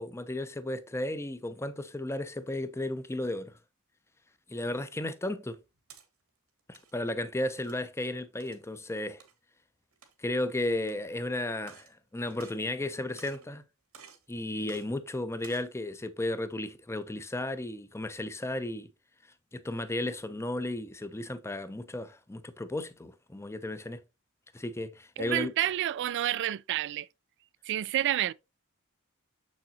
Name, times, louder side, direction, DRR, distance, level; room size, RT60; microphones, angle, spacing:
voice 1, 0.0-3.5 4.5-5.6 6.7-9.2 10.2-13.6 14.3-18.9 19.5-24.0 24.5-25.5, left 1 dB, 10° left, 0.5 m, -34 dB
sound 1, 5.6-6.0 6.6-6.9 7.6-7.9 8.4-8.6 9.2-9.3 9.9-10.3 10.8-10.9 11.6-11.9 12.3-12.9 13.2-13.5 13.9-14.2 14.7-14.8 15.3-15.7, right 6 dB, 90° right, 1.8 m, -52 dB
voice 2, 25.2-27.1 27.6-28.3, right 12 dB, 55° right, 0.3 m, -29 dB
7.1 x 6.4 x 2.7 m
head